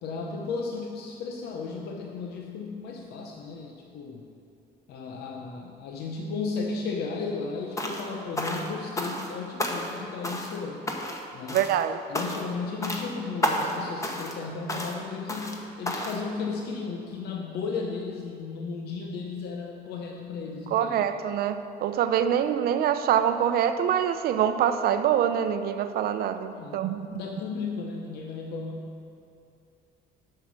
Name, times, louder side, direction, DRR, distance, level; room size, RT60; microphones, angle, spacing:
voice 1, 0.0-4.3 4.9-10.9 11.3-11.7 12.1-21.1 26.5-29.0, left 4 dB, 75° left, 1 dB, 0.7 m, -34 dB
sound 1, 7.8-8.1 8.4-9.3 9.6-10.0 10.2-10.6 10.9-11.2 11.5-11.8 12.1-12.5 12.8-13.1 13.4-13.8 14.0-14.4 14.7-15.0 15.3-15.6 15.9-16.2, left 1 dB, 20° left, 1.0 m, -31 dB
voice 2, 11.5-12.0 20.7-27.2, right 9 dB, 65° right, 10 dB, 0.6 m, -25 dB
8.0 x 6.4 x 6.1 m, 2.6 s
cardioid pair, 110°, 17 cm